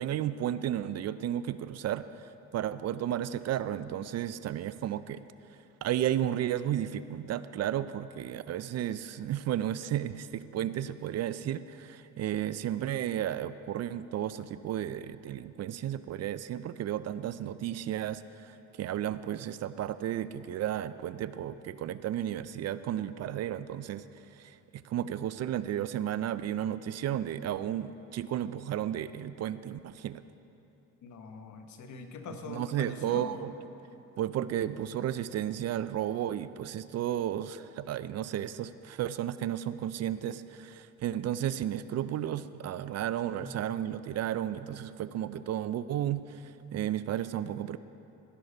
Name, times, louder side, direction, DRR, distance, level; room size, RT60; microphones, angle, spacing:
voice 1, 0.0-5.2 5.8-24.0 24.3-30.2 32.3-33.5 34.2-47.8, right 11 dB, 60° right, 15 dB, 0.4 m, -33 dB
voice 2, 31.0-33.5 43.3-43.5, left 4 dB, 75° left, 6 dB, 1.1 m, -43 dB
17.0 x 6.5 x 5.3 m, 2.9 s
cardioid pair, 90°, 30 cm